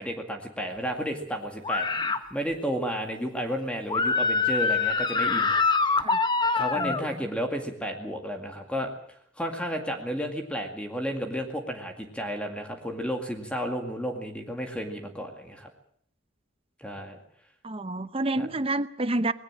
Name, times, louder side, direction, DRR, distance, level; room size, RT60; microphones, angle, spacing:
voice 1, 0.0-1.8 2.3-5.5 6.5-8.9 9.4-15.7 16.8-17.2 18.4-18.5, equal, 5° left, 3 dB, 2.2 m, -32 dB
sound 1, 1.6-2.2 3.9-7.0, left 4 dB, 25° left, 1.3 m, -24 dB
voice 2, 17.6-19.3, right 2 dB, 30° right, 13 dB, 0.9 m, -28 dB
20.5 x 17.5 x 7.4 m, 0.64 s
head